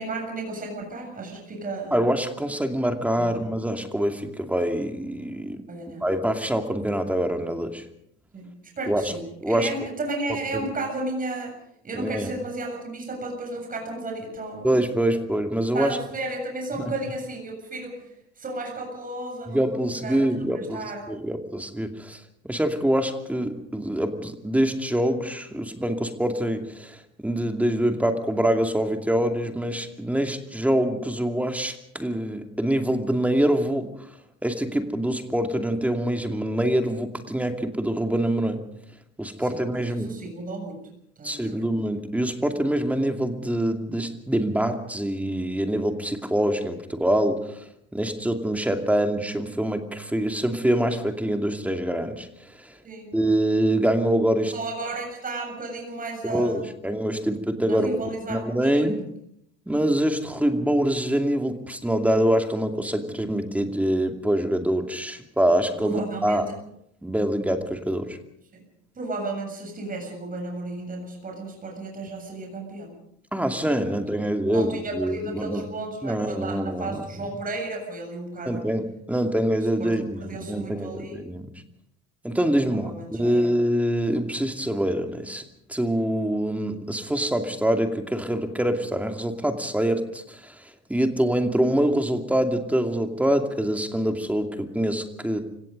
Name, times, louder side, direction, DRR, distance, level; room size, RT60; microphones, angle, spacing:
voice 1, 0.0-2.0 3.2-3.4 5.7-6.0 8.3-11.6 11.8-14.7 15.7-21.1 39.4-40.9 41.2-41.7 52.8-53.1 54.5-56.7 57.7-59.0 65.8-66.4 68.5-68.6 69.0-72.9 74.2-74.3 74.5-78.7 79.8-81.2 82.7-83.5, right 2 dB, 25° right, 2 dB, 7.4 m, -34 dB
voice 2, 1.9-5.6 6.0-7.8 8.9-9.1 9.4-9.7 10.5-10.7 11.9-12.3 14.6-16.0 16.8-16.9 19.5-20.8 21.1-22.2 22.5-34.1 34.4-38.6 39.2-40.1 41.2-47.7 47.9-52.7 53.1-54.5 56.2-58.0 58.3-59.0 59.7-66.5 67.0-68.2 73.3-75.6 76.0-77.0 78.5-81.5 82.2-85.4 85.7-95.4, right 1 dB, 5° right, 5 dB, 2.5 m, -25 dB
29.0 x 17.5 x 5.4 m, 0.75 s
supercardioid pair, 115°, 36 cm